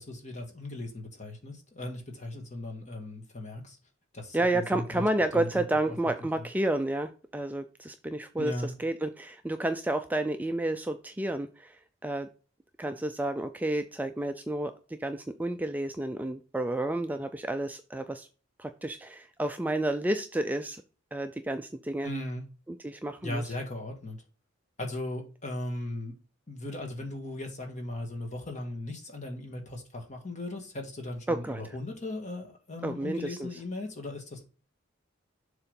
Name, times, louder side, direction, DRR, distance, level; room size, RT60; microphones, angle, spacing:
voice 1, 0.0-3.8 4.1-5.0 5.3-5.6 6.4-6.5 8.4-8.7 22.0-22.4 23.2-24.2 24.8-26.2 26.5-34.4, left 1 dB, 35° left, 1.8 m, -37 dB
voice 2, 4.3-12.3 12.8-18.3 18.6-20.8 21.1-22.1 22.7-23.5 31.3-31.6 32.8-33.6, right 1 dB, 10° right, 0.4 m, -31 dB
7.1 x 3.9 x 5.2 m
head